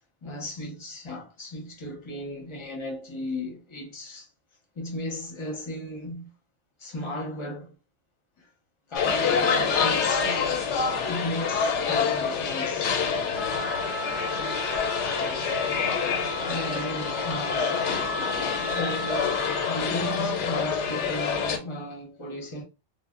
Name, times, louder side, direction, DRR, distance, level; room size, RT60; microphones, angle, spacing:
voice 1, 0.2-4.3 4.8-6.3 6.8-7.7 8.4-8.5 8.9-10.2 11.1-13.1 16.2-18.1 18.5-22.6, left 1 dB, 30° left, 0.7 m, -35 dB
sound 1, 8.9-21.6, left 6 dB, 90° left, 0.9 m, -27 dB
Trumpet, 13.3-19.9, equal, ahead, 0.3 m, -36 dB
2.1 x 2.0 x 3.5 m
omnidirectional pair, 1.2 m